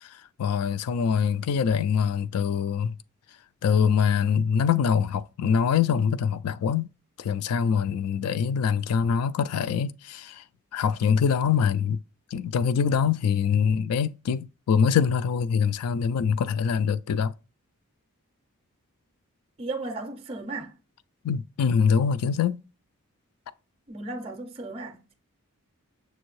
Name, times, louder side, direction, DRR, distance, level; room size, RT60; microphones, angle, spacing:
voice 1, 0.4-2.9 3.6-6.9 7.2-10.4 10.7-12.0 12.3-17.3 21.2-22.6, left 7 dB, 85° left, 0.3 m, -24 dB
voice 2, 19.6-20.7 23.9-25.1, right 2 dB, 25° right, 0.4 m, -35 dB
6.3 x 2.6 x 3.0 m
head